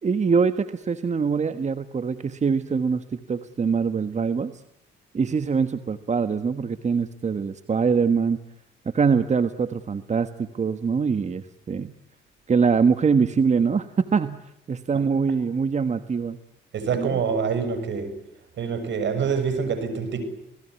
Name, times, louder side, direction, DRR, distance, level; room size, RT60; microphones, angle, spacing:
voice 1, 0.0-4.6 5.1-8.4 8.8-11.9 12.5-14.4 14.7-16.4 16.9-17.2, right 5 dB, 35° right, 1.5 m, -23 dB
voice 2, 16.7-18.2 18.6-20.3, right 6 dB, 65° right, 6.7 m, -26 dB
28.0 x 19.5 x 9.7 m
cardioid pair, 90°, 20 cm